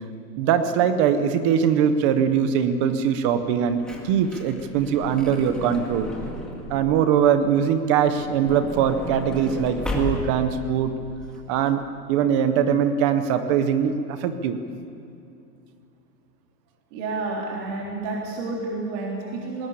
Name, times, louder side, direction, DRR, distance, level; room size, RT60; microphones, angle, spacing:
voice 1, 0.4-6.1 6.7-10.9 11.5-14.6, right 8 dB, 20° right, 10 dB, 0.5 m, -22 dB
Truck / Door, 3.5-7.0 8.0-10.6 11.2-11.3 11.5-11.7, left 2 dB, ahead, 2.0 m, -34 dB
voice 2, 16.9-19.7, right 3 dB, 35° right, -3 dB, 3.6 m, -30 dB
20.0 x 17.5 x 8.7 m, 2.6 s
supercardioid pair, 160°, 49 cm